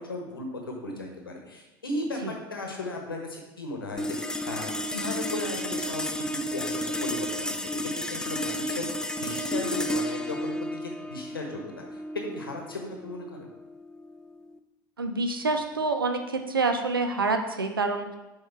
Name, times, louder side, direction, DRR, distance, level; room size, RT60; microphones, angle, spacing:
voice 1, 0.0-13.5, left 2 dB, 85° left, 2 dB, 1.0 m, -36 dB
sound 1, 4.0-14.6, left 1 dB, 5° left, 0.4 m, -32 dB
voice 2, 15.0-18.2, right 3 dB, 85° right, 6 dB, 0.5 m, -27 dB
6.8 x 3.7 x 4.3 m, 1.0 s
figure-of-eight pair, 70°, 11 cm